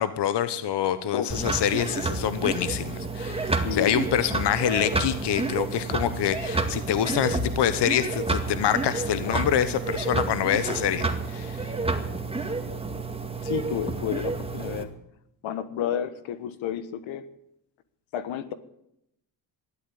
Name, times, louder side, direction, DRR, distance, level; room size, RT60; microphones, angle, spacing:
voice 1, 0.0-11.7, left 10 dB, 60° left, 13 dB, 1.2 m, -26 dB
sound 1, 1.3-14.8, right 3 dB, 10° right, 2.1 m, -30 dB
voice 2, 3.4-3.9 9.3-9.4 13.4-14.9 15.4-17.3 18.1-18.5, left 9 dB, 80° left, 13 dB, 1.4 m, -31 dB
13.5 x 11.5 x 8.5 m, 0.79 s
supercardioid pair, 75°, 46 cm